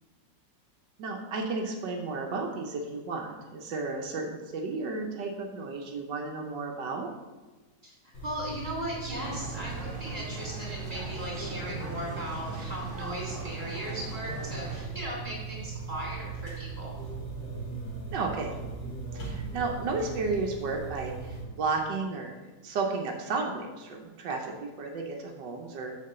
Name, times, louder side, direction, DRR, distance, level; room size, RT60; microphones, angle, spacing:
voice 1, 1.0-7.1 18.1-18.5 19.1-22.3 22.6-25.9, right 3 dB, 85° right, 1 dB, 1.4 m, -33 dB
sound 1, 8.1-21.4, right 5 dB, 85° left, 2.3 m, -39 dB
voice 2, 8.2-16.9, equal, 20° right, -4 dB, 3.0 m, -37 dB
sound 2, 9.1-14.8, right 2 dB, 50° right, 1.8 m, -42 dB
6.6 x 4.5 x 6.7 m, 1.2 s
omnidirectional pair, 1.9 m